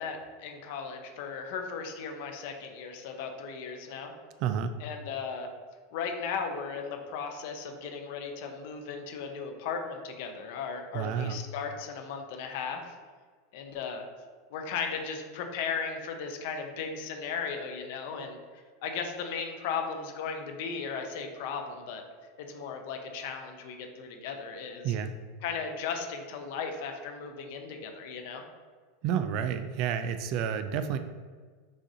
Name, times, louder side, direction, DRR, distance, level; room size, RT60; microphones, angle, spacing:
voice 1, 0.0-4.1 4.8-5.5 5.9-12.9 13.5-14.0 14.5-18.4 18.8-22.0 22.4-24.9 25.4-28.4, left 5 dB, 65° left, 4 dB, 0.6 m, -36 dB
voice 2, 4.4-4.8 10.9-11.4 24.8-25.1 29.0-31.0, right 8 dB, 55° right, 10 dB, 0.3 m, -30 dB
6.3 x 2.5 x 2.7 m, 1.5 s
supercardioid pair, 130°, 0 cm